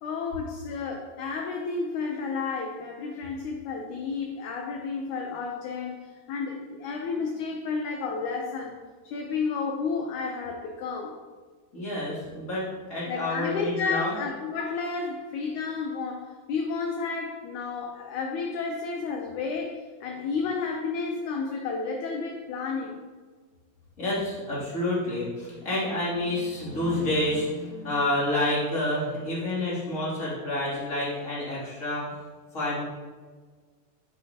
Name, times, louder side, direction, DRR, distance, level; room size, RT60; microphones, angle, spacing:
voice 1, 0.0-8.8 9.0-11.2 13.1-23.0, left 4 dB, 70° left, 2 dB, 2.0 m, -31 dB
voice 2, 11.7-14.1 24.0-32.2 32.5-32.8, left 1 dB, 20° left, -7 dB, 3.1 m, -29 dB
10.0 x 10.0 x 2.9 m, 1.5 s
omnidirectional pair, 4.1 m